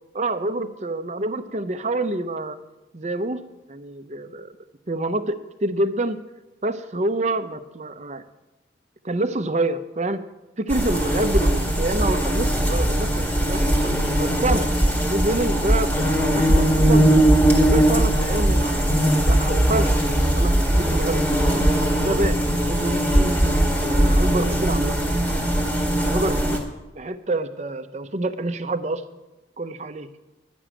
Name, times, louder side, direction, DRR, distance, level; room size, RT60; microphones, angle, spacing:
voice 1, 0.1-2.6 2.9-3.4 3.7-4.6 4.9-6.2 6.6-8.2 9.0-10.3 10.6-14.7 15.1-17.1 17.6-21.6 22.0-25.0 25.8-26.6 26.9-29.0 29.6-30.1, right 2 dB, 40° right, 9 dB, 0.6 m, -27 dB
sound 1, 10.7-26.6, right 1 dB, 10° left, 1.7 m, -20 dB
11.0 x 6.1 x 8.9 m, 1.0 s
head